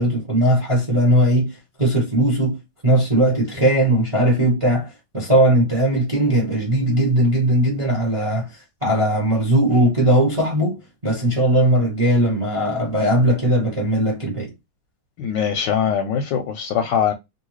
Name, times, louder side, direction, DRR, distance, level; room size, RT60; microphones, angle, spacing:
voice 1, 0.0-14.5, right 1 dB, 30° right, 0.6 m, -19 dB
voice 2, 15.2-17.1, left 8 dB, 70° left, 1.1 m, -22 dB
3.1 x 2.6 x 3.1 m
omnidirectional pair, 2.4 m